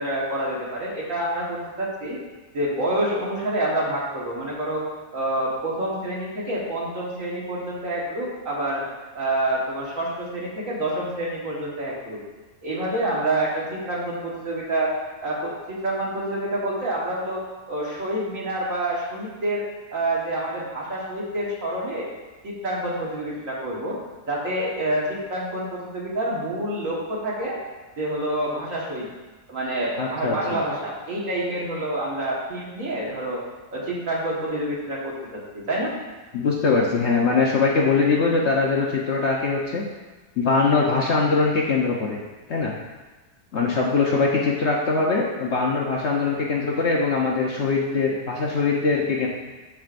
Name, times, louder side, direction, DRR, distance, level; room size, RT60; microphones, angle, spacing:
voice 1, 0.0-2.2 2.5-4.9 5.1-8.8 9.2-12.2 12.6-14.9 15.2-17.4 17.7-19.6 19.9-22.1 22.4-24.0 24.3-27.6 28.0-29.1 29.5-33.4 33.7-35.9, right 1 dB, 55° right, -4 dB, 1.8 m, -27 dB
voice 2, 30.0-30.4 36.3-39.8 40.4-42.2 42.5-42.7 43.5-49.3, left 4 dB, 55° left, -2 dB, 0.9 m, -22 dB
12.0 x 4.7 x 2.5 m, 1.2 s
omnidirectional pair, 1.6 m